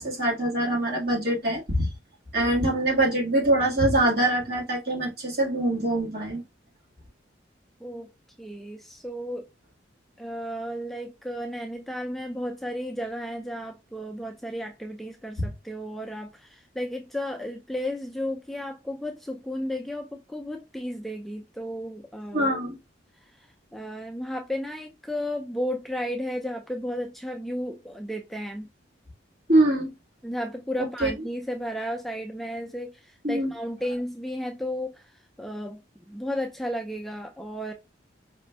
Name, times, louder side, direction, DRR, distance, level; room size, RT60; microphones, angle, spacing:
voice 1, 0.0-1.9 2.3-6.4 22.3-22.8 29.5-29.9 31.0-31.1 33.2-33.5, right 1 dB, 55° right, 1.6 m, -23 dB
voice 2, 8.4-9.5 10.2-22.5 23.1-28.7 30.2-37.7, equal, ahead, 0.3 m, -33 dB
4.9 x 2.5 x 2.2 m
head